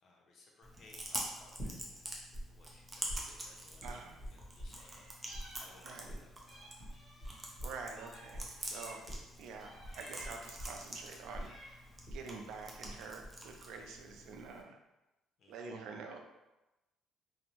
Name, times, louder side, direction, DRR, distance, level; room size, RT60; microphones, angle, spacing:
voice 1, 0.0-2.1 2.5-4.0 4.3-6.7 15.4-15.7, left 2 dB, 55° left, -1 dB, 0.6 m, -62 dB
Chewing mastication, 0.6-14.6, right 1 dB, 20° right, 0.5 m, -47 dB
sound 1, 1.6-2.4 2.7-5.1 5.3-12.9 13.2-13.7, equal, 35° left, 1.4 m, -45 dB
voice 2, 3.8-4.2 5.8-6.1 7.6-9.0 9.4-11.9 12.1-14.8 15.5-16.2, right 4 dB, 75° right, 3 dB, 0.3 m, -47 dB
Meow, 4.7-6.1 6.5-9.2 9.6-10.6 11.1-12.0, equal, 5° left, 0.8 m, -55 dB
2.6 x 2.0 x 2.9 m, 1.0 s
cardioid pair, 105°, 0 cm